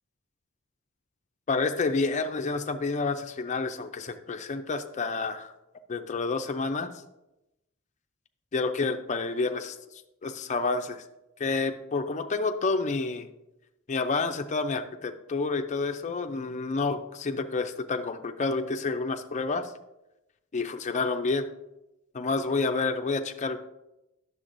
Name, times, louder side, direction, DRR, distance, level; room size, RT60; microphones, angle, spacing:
voice 1, 1.5-5.5 5.9-6.9 8.5-9.8 10.2-11.0 11.4-13.3 13.9-19.7 20.5-21.4 22.1-23.6, left 3 dB, 35° left, 7 dB, 0.4 m, -29 dB
9.8 x 6.8 x 2.6 m, 0.94 s
head